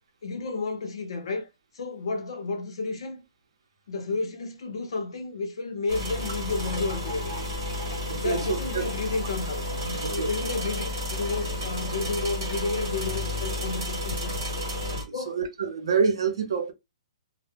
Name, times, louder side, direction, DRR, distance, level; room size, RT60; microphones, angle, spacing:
voice 1, 0.2-1.5 1.7-3.2 3.9-7.3 8.2-14.3 15.1-15.4, left 3 dB, 55° left, 0.7 m, -31 dB
sound 1, 5.9-15.0, left 1 dB, 30° right, 1.2 m, -31 dB
voice 2, 8.1-8.8 10.0-10.3 15.3-16.7, right 5 dB, 55° right, 0.7 m, -27 dB
2.1 x 2.1 x 3.2 m
hypercardioid pair, 180°, 3 cm